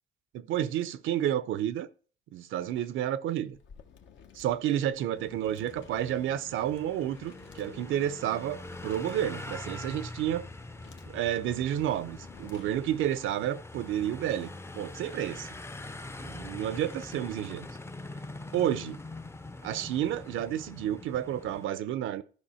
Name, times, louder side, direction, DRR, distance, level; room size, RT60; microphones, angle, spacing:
voice 1, 0.3-1.9 2.3-3.6 4.3-10.5 11.1-15.5 16.2-17.8 18.5-19.0 19.6-22.2, right 11 dB, 85° right, 0.6 m, -31 dB
sound 1, 3.5-13.1, left 7 dB, 70° left, 1.0 m, -55 dB
sound 2, 5.1-21.7, left 2 dB, 15° left, 0.5 m, -44 dB
12.0 x 5.4 x 4.3 m
cardioid pair, 90°, 20 cm